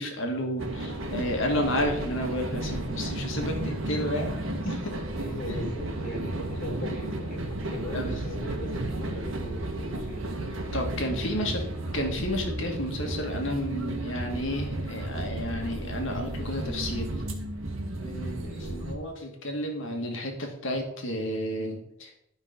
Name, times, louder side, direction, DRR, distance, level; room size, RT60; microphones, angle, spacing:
voice 1, 0.0-4.3 4.6-4.9 5.5-5.6 7.9-8.1 10.7-11.6 11.9-17.1 18.0-22.1, equal, 65° left, 2 dB, 2.0 m, -31 dB
sound 1, 0.6-19.0, right 1 dB, 75° right, 1.7 m, -33 dB
voice 2, 5.2-10.5 11.3-11.7 18.4-18.9, equal, 40° left, -2 dB, 3.5 m, -38 dB
11.5 x 5.7 x 5.2 m, 0.75 s
head